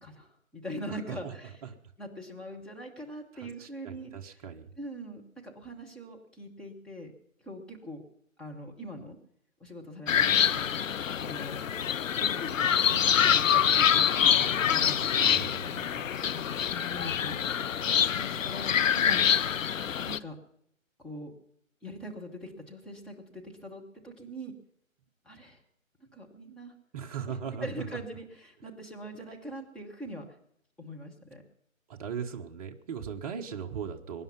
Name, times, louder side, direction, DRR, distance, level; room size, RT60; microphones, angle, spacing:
voice 1, 0.0-1.6 2.0-4.4 4.8-7.1 7.4-8.0 8.4-9.2 9.6-10.9 11.2-11.7 12.2-15.4 16.3-19.3 19.8-20.4 21.0-21.3 21.8-24.5 25.2-25.6 26.0-26.7 27.3-27.4 27.6-30.3 30.8-31.4, equal, ahead, -2 dB, 1.0 m, -42 dB
voice 2, 0.9-1.3 1.6-1.8 3.3-4.7 15.2-16.0 26.9-27.8 31.9-34.2, right 7 dB, 25° right, 3 dB, 1.2 m, -39 dB
sound 1, 10.1-20.2, left 8 dB, 70° left, 0.8 m, -26 dB
23.0 x 10.5 x 5.8 m, 0.72 s
hypercardioid pair, 155°, 41 cm